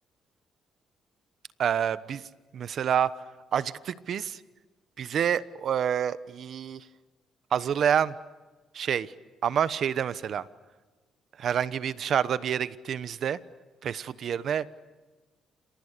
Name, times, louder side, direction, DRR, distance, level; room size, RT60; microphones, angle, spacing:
voice 1, 1.6-2.2 2.5-3.1 3.5-4.4 5.0-6.8 7.5-8.1 8.7-9.1 9.4-10.5 11.4-13.4 13.8-14.8, right 8 dB, 60° right, 15 dB, 1.1 m, -27 dB
29.0 x 28.5 x 6.8 m, 1.3 s
cardioid pair, 90°, 0 cm